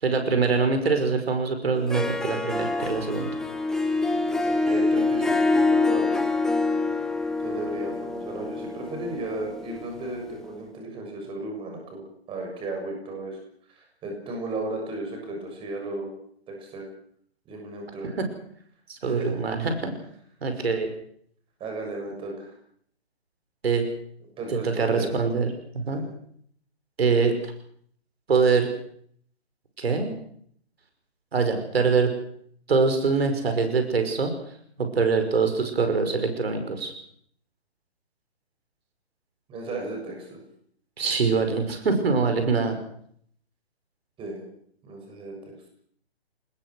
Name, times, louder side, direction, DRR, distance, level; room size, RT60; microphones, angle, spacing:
voice 1, 0.0-3.3 18.2-18.3 18.9-19.9 20.4-20.9 23.6-23.8 24.6-26.0 27.0-27.3 28.3-28.7 29.8-30.1 31.3-32.1 32.7-34.3 34.8-36.9 41.0-42.8, right 4 dB, 70° right, 6 dB, 5.6 m, -24 dB
Harp, 1.7-10.3, left 3 dB, ahead, 0.9 m, -26 dB
voice 2, 4.4-6.3 7.4-13.4 13.7-16.1 16.5-16.8 17.5-18.1 19.0-19.4 21.6-22.6 24.4-25.1 25.9-26.1 39.5-40.4 44.2-44.5 44.8-45.5, right 2 dB, 15° right, 2 dB, 6.9 m, -35 dB
26.0 x 20.5 x 6.3 m, 0.63 s
hypercardioid pair, 140°, 32 cm